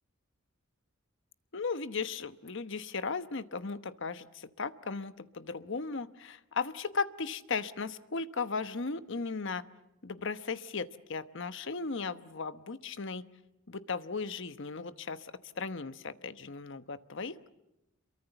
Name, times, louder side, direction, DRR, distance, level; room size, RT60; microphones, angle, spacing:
voice 1, 1.5-9.6 10.0-13.2 13.7-17.5, left 4 dB, 65° left, 12 dB, 1.0 m, -36 dB
27.5 x 23.0 x 7.0 m, 0.93 s
head